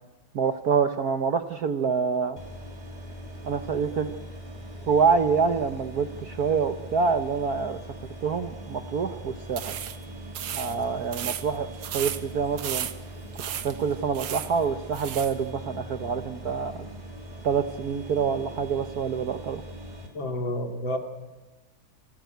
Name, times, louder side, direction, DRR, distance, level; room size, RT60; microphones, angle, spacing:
voice 1, 0.3-2.4 3.4-4.1 4.9-7.8 8.2-9.8 10.5-11.7 11.9-12.9 13.5-16.9 17.4-19.6, right 5 dB, 55° right, 9 dB, 1.2 m, -26 dB
sound 1, 2.4-20.1, right 1 dB, 20° right, 3.6 m, -41 dB
sound 2, 9.5-15.4, right 10 dB, 75° right, 1.9 m, -36 dB
voice 2, 20.1-21.0, left 1 dB, 60° left, 5 dB, 3.3 m, -29 dB
28.5 x 16.5 x 9.3 m, 1.1 s
omnidirectional pair, 2.4 m